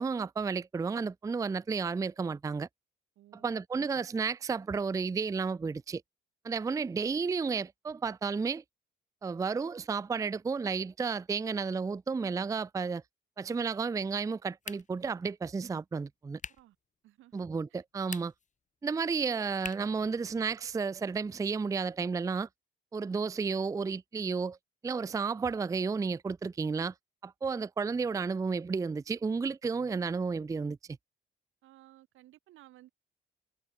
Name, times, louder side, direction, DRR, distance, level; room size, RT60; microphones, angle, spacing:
voice 1, 0.0-2.7 3.4-6.0 6.4-8.6 9.2-13.0 13.4-16.4 17.3-18.3 18.8-22.5 22.9-24.6 24.8-26.9 27.2-30.8, right 5 dB, 15° right, 0.4 m, -32 dB
voice 2, 3.2-3.6 16.5-16.8 17.0-17.8 31.6-32.9, right 15 dB, 85° right, 2.6 m, -58 dB
sound 1, 14.6-15.1 16.4-16.7 18.0-18.5 19.6-20.0, left 6 dB, 40° left, 1.8 m, -43 dB
cardioid pair, 90°, 20 cm